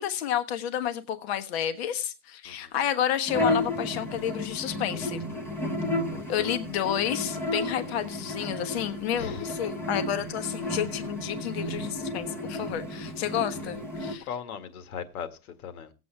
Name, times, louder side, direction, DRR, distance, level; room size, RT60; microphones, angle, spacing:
voice 1, 0.0-5.2 6.3-14.3, left 10 dB, 40° left, 1.3 m, -30 dB
sound 1, 3.3-14.1, left 1 dB, 5° left, 0.9 m, -32 dB
voice 2, 5.9-6.5 9.2-9.5 14.2-15.9, left 7 dB, 65° left, 1.9 m, -39 dB
18.5 x 8.3 x 3.4 m
supercardioid pair, 165°, 46 cm